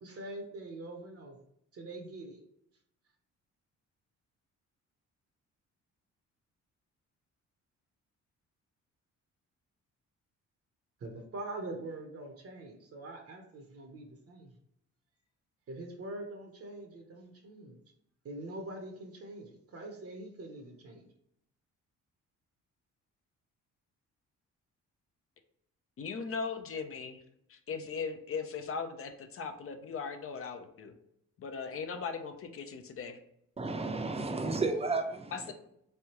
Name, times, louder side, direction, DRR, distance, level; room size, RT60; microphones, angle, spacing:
voice 1, 0.0-1.4 1.7-2.4 11.0-14.5 15.7-17.8 18.2-21.1, right 2 dB, 50° right, 3 dB, 0.8 m, -44 dB
voice 2, 26.0-27.2 27.5-30.9 31.4-33.2 35.3-35.5, left 5 dB, 45° left, 7 dB, 0.6 m, -38 dB
voice 3, 33.6-35.5, right 3 dB, 20° right, 5 dB, 0.6 m, -33 dB
3.5 x 3.3 x 2.9 m, 0.75 s
cardioid pair, 90°, 30 cm